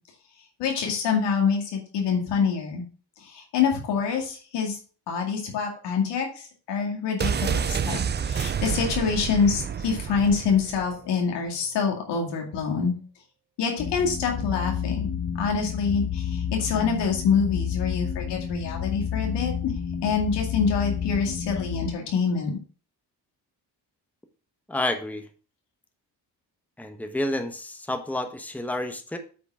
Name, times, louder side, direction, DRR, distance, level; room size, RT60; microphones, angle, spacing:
voice 1, 0.6-2.8 3.2-4.8 5.1-12.9 13.6-15.1 15.3-19.7 20.0-22.5, left 6 dB, 85° left, 1 dB, 2.3 m, -26 dB
sound 1, 7.2-11.0 11.2-11.3, right 7 dB, 25° right, 0.4 m, -28 dB
sound 2, 13.8-21.9, left 8 dB, 40° left, 1.1 m, -30 dB
voice 2, 24.7-25.3 26.8-29.2, left 1 dB, 5° left, 6 dB, 1.1 m, -29 dB
8.5 x 3.8 x 6.2 m, 0.39 s
cardioid pair, 85°, 41 cm